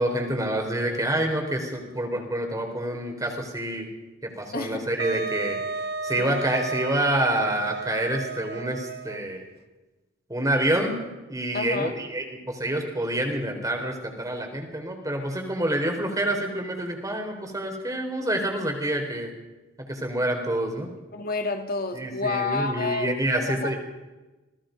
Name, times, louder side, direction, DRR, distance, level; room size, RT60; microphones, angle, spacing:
voice 1, 0.0-3.9 4.2-5.6 6.0-9.4 10.3-11.0 11.3-19.3 19.8-20.9 21.9-23.8, right 1 dB, 15° right, 2 dB, 4.1 m, -27 dB
voice 2, 4.5-4.9 6.2-6.4 11.5-11.9 21.1-23.7, left 3 dB, 45° left, 6 dB, 2.4 m, -30 dB
Wind instrument woodwind instrument, 5.0-9.4, right 3 dB, 50° right, 1.1 m, -33 dB
28.0 x 19.0 x 5.3 m, 1.1 s
head